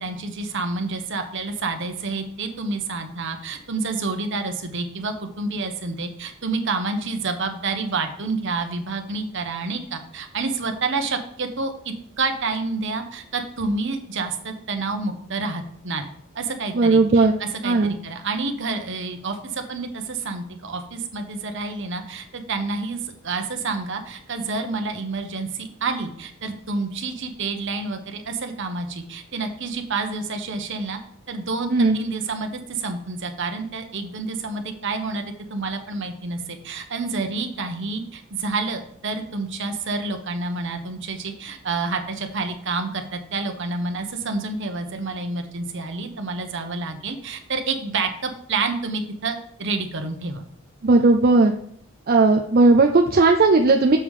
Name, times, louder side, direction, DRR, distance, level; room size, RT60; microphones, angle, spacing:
voice 1, 0.0-16.0 16.3-31.0 31.3-50.4, right 3 dB, 60° right, 6 dB, 1.1 m, -29 dB
voice 2, 16.7-17.3 17.6-17.9 31.7-32.0 50.8-51.5 52.1-54.0, right 3 dB, 45° right, 3 dB, 0.5 m, -16 dB
6.9 x 5.5 x 4.8 m, 0.67 s
head